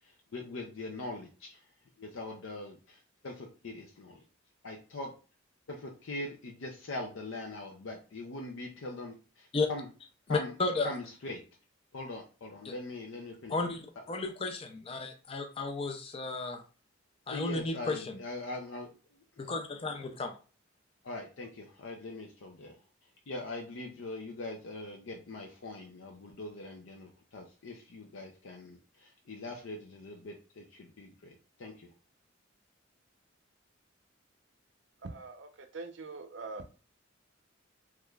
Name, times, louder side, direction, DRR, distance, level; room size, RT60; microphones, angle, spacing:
voice 1, 0.0-1.6 2.0-4.2 4.6-5.1 5.7-9.9 10.3-10.6 10.8-11.4 11.9-13.6 17.3-18.9 19.4-19.5 21.0-22.7 23.3-31.9, left 2 dB, 80° left, 2 dB, 0.5 m, -42 dB
voice 2, 10.3-10.9 13.5-16.6 17.3-18.2 19.4-20.3, left 3 dB, 30° left, 5 dB, 0.4 m, -33 dB
voice 3, 35.0-36.6, right 3 dB, 65° right, 7 dB, 0.5 m, -43 dB
3.5 x 3.1 x 2.3 m, 0.35 s
head